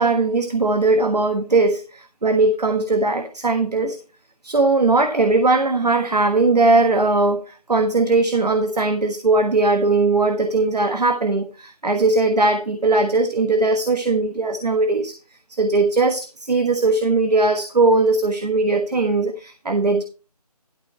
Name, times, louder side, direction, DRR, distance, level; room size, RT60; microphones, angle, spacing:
voice 1, 0.0-4.0 4.4-15.2 15.5-20.0, right 3 dB, 80° right, 7 dB, 1.4 m, -19 dB
12.0 x 4.3 x 5.6 m, 0.34 s
figure-of-eight pair, 170°, 20 cm